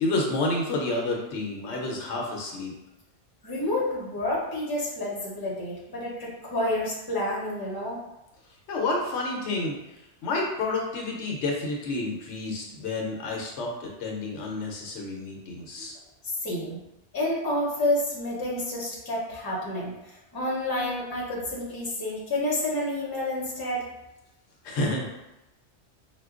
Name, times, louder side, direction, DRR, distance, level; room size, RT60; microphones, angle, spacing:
voice 1, 0.0-2.7 8.7-9.8 10.2-16.0 24.6-25.1, left 2 dB, 75° left, -1 dB, 0.9 m, -29 dB
voice 2, 3.4-8.0 16.4-16.8 17.1-23.9, left 1 dB, 20° left, -4 dB, 0.7 m, -29 dB
4.3 x 2.2 x 2.4 m, 0.93 s
omnidirectional pair, 1.2 m